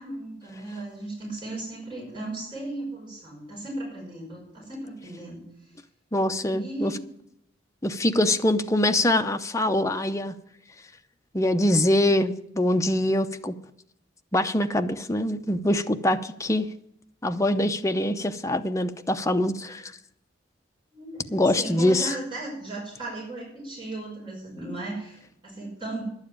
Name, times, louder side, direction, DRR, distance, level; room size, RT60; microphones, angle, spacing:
voice 1, 0.0-5.4 6.4-7.1 20.9-26.0, right 2 dB, 25° right, -7 dB, 5.9 m, -36 dB
voice 2, 6.1-6.9 7.8-10.3 11.3-13.5 14.3-16.7 17.2-19.9 21.3-22.1, left 1 dB, 15° left, 7 dB, 0.7 m, -24 dB
11.5 x 7.3 x 8.7 m, 0.77 s
head